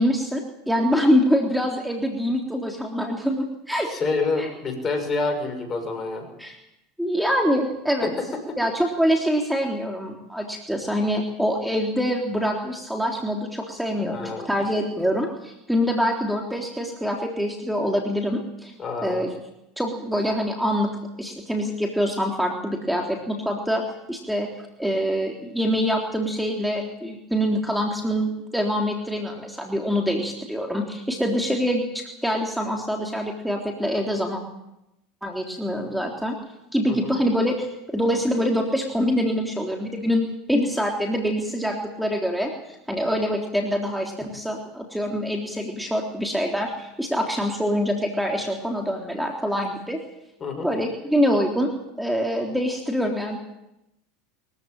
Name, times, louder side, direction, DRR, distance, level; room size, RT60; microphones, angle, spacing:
voice 1, 0.0-3.9 4.4-4.5 6.4-6.6 7.0-8.1 8.6-18.7 19.0-19.3 19.8-20.9 21.2-23.8 24.1-24.5 24.8-34.4 35.2-36.4 36.7-40.2 40.5-50.0 50.6-51.7 52.0-53.4, equal, ahead, 1 dB, 3.7 m, -25 dB
voice 2, 3.9-6.3 8.0-8.6 14.0-14.5 18.8-19.3 36.9-37.1 50.4-50.7, left 3 dB, 30° left, 7 dB, 6.2 m, -28 dB
23.5 x 15.5 x 9.0 m, 0.88 s
hypercardioid pair, 90°, 0 cm